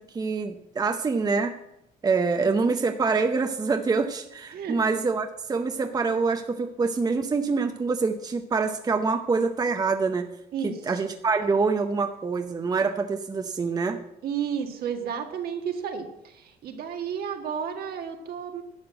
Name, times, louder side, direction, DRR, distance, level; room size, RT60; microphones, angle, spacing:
voice 1, 0.0-1.5 2.0-10.3 10.6-14.0, right 4 dB, 20° right, 7 dB, 0.7 m, -25 dB
voice 2, 10.5-11.0 14.2-18.6, right 7 dB, 65° right, 5 dB, 1.7 m, -32 dB
11.5 x 5.9 x 7.9 m, 0.83 s
cardioid pair, 110°, 17 cm